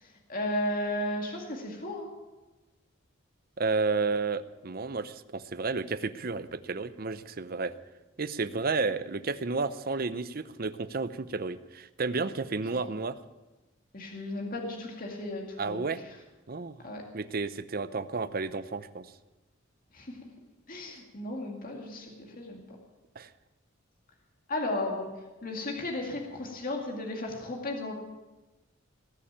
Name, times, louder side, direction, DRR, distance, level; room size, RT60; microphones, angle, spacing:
voice 1, 0.0-2.1 12.7-12.8 13.9-16.1 16.8-17.0 19.9-20.2 20.7-22.6 24.5-25.1 25.4-27.9, left 1 dB, 45° left, 1 dB, 2.2 m, -34 dB
voice 2, 3.6-7.7 8.2-13.2 15.6-16.0 16.5-16.8 17.1-19.1 23.2-23.3, right 4 dB, 45° right, 13 dB, 0.7 m, -31 dB
19.5 x 7.3 x 8.7 m, 1.1 s
head